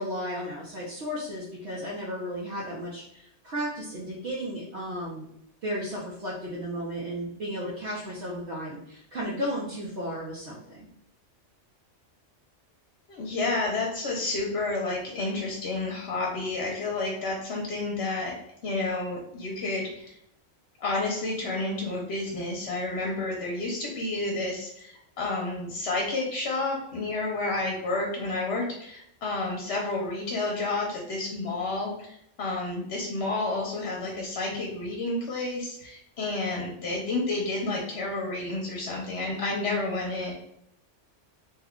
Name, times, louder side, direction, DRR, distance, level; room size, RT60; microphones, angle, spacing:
voice 1, 0.0-5.3 5.6-10.9, equal, 65° right, -5 dB, 0.9 m, -34 dB
voice 2, 13.1-18.4 18.6-20.2 20.8-40.3, left 2 dB, 65° left, -2 dB, 0.9 m, -30 dB
3.0 x 2.2 x 3.5 m, 0.74 s
omnidirectional pair, 1.3 m